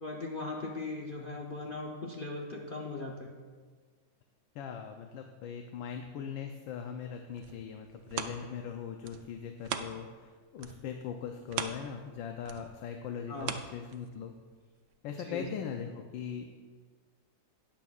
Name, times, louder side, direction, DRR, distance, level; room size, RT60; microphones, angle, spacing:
voice 1, 0.0-3.3 13.3-13.5 15.1-15.5, left 3 dB, 70° left, -1 dB, 0.5 m, -39 dB
voice 2, 4.5-14.3 15.0-16.5, left 7 dB, 85° left, 4 dB, 1.4 m, -40 dB
sound 1, 7.1-10.3 10.6-14.4 14.9-15.0, right 8 dB, 85° right, 1.4 m, -41 dB
19.5 x 7.2 x 2.4 m, 1.5 s
omnidirectional pair, 2.0 m